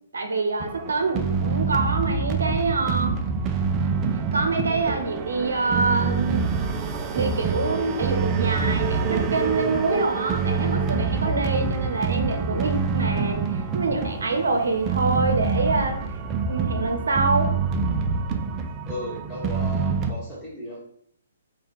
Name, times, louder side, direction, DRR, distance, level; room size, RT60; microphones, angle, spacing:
voice 1, 0.1-3.1 4.3-6.5 7.1-16.0 16.5-17.5, right 3 dB, 75° right, 5 dB, 0.7 m, -25 dB
sound 1, 0.6-20.1, right 5 dB, 25° right, 0.4 m, -26 dB
voice 2, 18.8-20.8, equal, 10° left, -11 dB, 1.4 m, -35 dB
3.3 x 2.3 x 4.0 m, 0.69 s
figure-of-eight pair, 130°, 0 cm